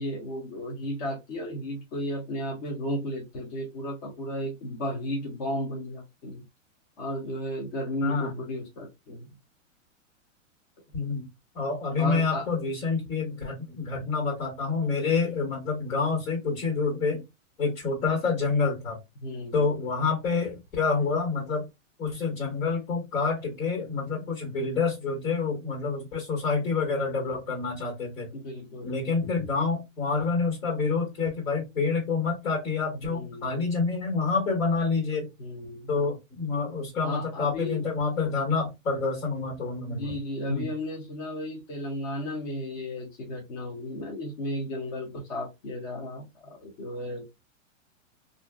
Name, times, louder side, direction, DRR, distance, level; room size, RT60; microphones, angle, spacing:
voice 1, 0.0-6.4 7.0-9.3 12.0-12.5 19.2-19.7 28.3-29.0 33.0-33.6 35.4-35.9 37.0-37.8 39.9-47.3, left 1 dB, 35° left, 0.5 m, -34 dB
voice 2, 8.0-8.3 10.9-11.3 11.5-17.2 17.6-19.0 19.5-21.7 22.0-28.3 28.8-35.3 35.9-40.1 40.5-40.7, left 4 dB, 75° left, 1.5 m, -28 dB
2.7 x 2.5 x 2.2 m
supercardioid pair, 160°, 39 cm